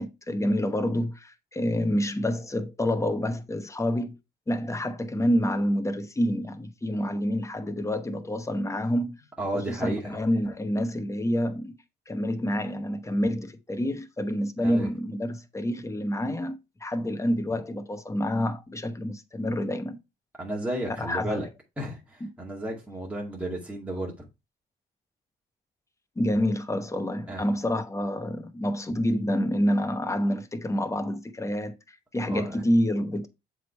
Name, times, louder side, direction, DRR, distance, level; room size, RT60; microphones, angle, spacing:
voice 1, 0.0-4.2 4.5-9.2 9.5-11.7 12.1-20.0 21.0-21.4 26.2-33.3, equal, 15° left, 0.9 m, -28 dB
voice 2, 9.4-10.2 14.6-14.9 20.4-21.5 21.8-24.3 27.3-27.5 32.3-32.6, right 1 dB, 5° right, 2.1 m, -33 dB
7.5 x 3.5 x 4.4 m
cardioid pair, 90°, 20 cm